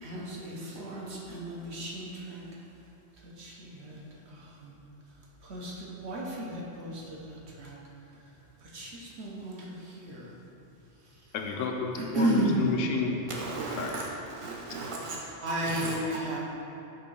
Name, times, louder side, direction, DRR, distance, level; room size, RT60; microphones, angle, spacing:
voice 1, 0.0-2.4 3.2-4.0 4.3-4.7 5.4-7.8 8.6-10.3 12.0-12.6 15.4-16.4, right 1 dB, 60° right, 1.2 m, -34 dB
voice 2, 11.3-13.2 13.8-13.9, left 4 dB, 80° left, 1.0 m, -31 dB
voice 3, 13.4-14.0 14.4-15.2 15.6-15.9, right 3 dB, 30° right, 0.9 m, -36 dB
5.9 x 3.7 x 5.4 m
omnidirectional pair, 1.3 m